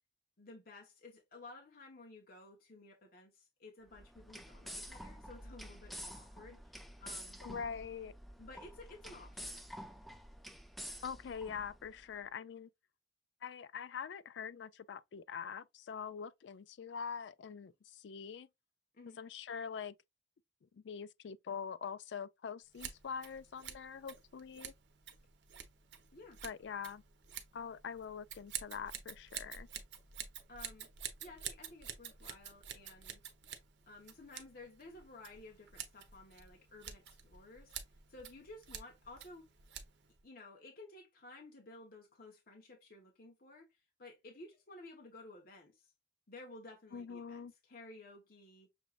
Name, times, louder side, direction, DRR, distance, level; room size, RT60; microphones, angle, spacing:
voice 1, 0.4-7.4 8.4-9.6 18.9-19.2 26.1-26.4 30.5-30.9 31.2-33.3 33.9-37.8 38.1-39.5 40.2-45.9 46.3-48.7, left 2 dB, 50° left, 0.9 m, -54 dB
sound 1, 3.9-12.0, equal, ahead, 0.4 m, -49 dB
voice 2, 7.4-8.1 11.0-12.7 13.4-18.5 19.2-19.9 20.7-24.7 26.4-27.0 27.5-29.7 46.9-47.5, left 6 dB, 75° left, 0.4 m, -44 dB
Scissors, 22.7-40.2, right 8 dB, 70° right, 0.8 m, -49 dB
6.3 x 3.0 x 2.3 m
head